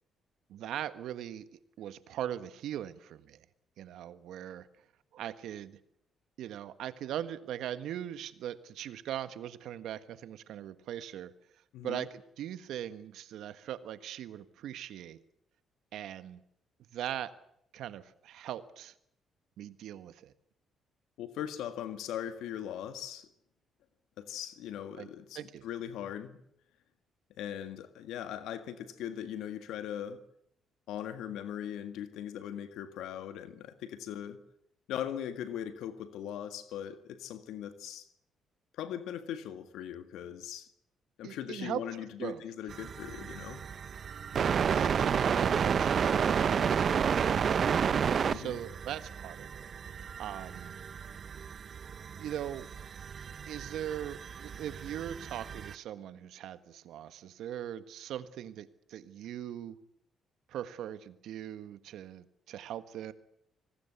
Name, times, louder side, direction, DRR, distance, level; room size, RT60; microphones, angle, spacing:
voice 1, 0.5-3.4 3.8-4.7 5.1-5.8 6.4-11.3 11.8-15.2 15.9-16.4 16.9-17.3 17.7-18.9 19.6-20.3 25.0-25.1 25.3-25.6 41.2-41.8 42.2-42.4 44.3-47.7 48.3-49.7 50.2-50.7 52.2-52.7 53.5-59.8 60.5-63.1, right 11 dB, 80° right, 1.5 m, -40 dB
voice 2, 11.7-12.1 21.2-23.3 24.2-26.4 27.4-30.2 30.9-34.4 34.9-38.1 38.7-40.7 41.2-43.6 48.3-48.6, left 10 dB, 85° left, 1.8 m, -40 dB
sound 1, 42.7-55.7, right 7 dB, 50° right, 0.9 m, -31 dB
26.0 x 19.0 x 8.2 m
cardioid pair, 90°, 0 cm